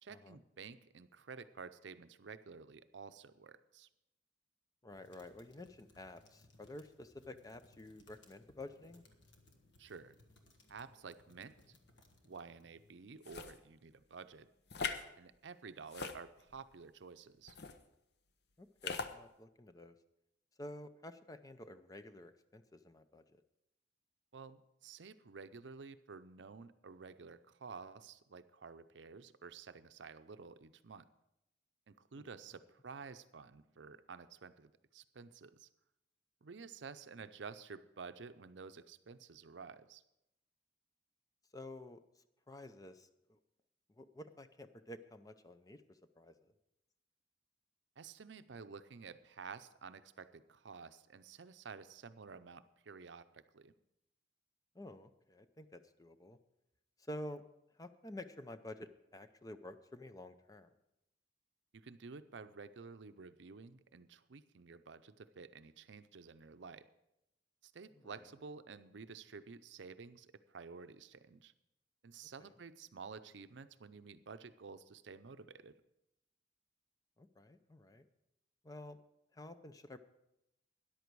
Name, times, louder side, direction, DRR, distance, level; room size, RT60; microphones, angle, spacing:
voice 1, 0.0-3.9 9.8-10.2 10.7-11.7 12.2-14.5 15.2-17.6 24.3-31.1 31.9-35.7 36.4-40.0 48.0-53.7 61.7-66.9 67.6-71.5 72.0-75.8, right 5 dB, 75° right, 12 dB, 0.6 m, -52 dB
voice 2, 4.8-9.0 18.6-20.0 20.6-23.4 32.2-32.3 41.5-42.0 42.5-43.4 44.0-46.4 54.7-56.4 57.1-57.4 57.8-60.7 68.0-68.2 72.4-72.5 77.2-78.1 78.6-79.0 79.3-80.0, left 1 dB, 20° left, 10 dB, 0.5 m, -50 dB
sound 1, 4.9-12.9, left 2 dB, 80° left, 1.4 m, -67 dB
sound 2, 13.2-13.6 14.7-15.0 15.9-16.6 17.5-17.8 18.8-19.1, left 5 dB, 60° left, 0.8 m, -40 dB
13.5 x 10.5 x 4.7 m, 0.87 s
head